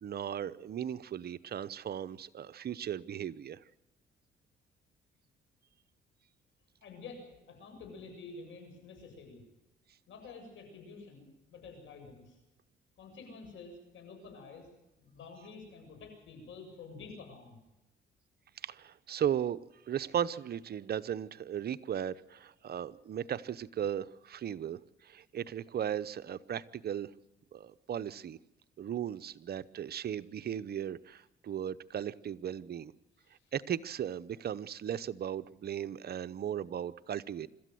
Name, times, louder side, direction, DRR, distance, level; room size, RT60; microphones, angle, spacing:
voice 1, 0.0-3.6 18.6-19.6 19.9-27.1 27.5-28.4 28.8-32.9 33.5-37.5, right 9 dB, 55° right, 13 dB, 0.8 m, -36 dB
voice 2, 6.8-9.4 10.1-12.4 13.0-14.7 15.0-17.6 33.2-33.5, left 4 dB, 75° left, 4 dB, 7.6 m, -49 dB
26.0 x 14.0 x 7.8 m, 0.97 s
cardioid pair, 90°, 20 cm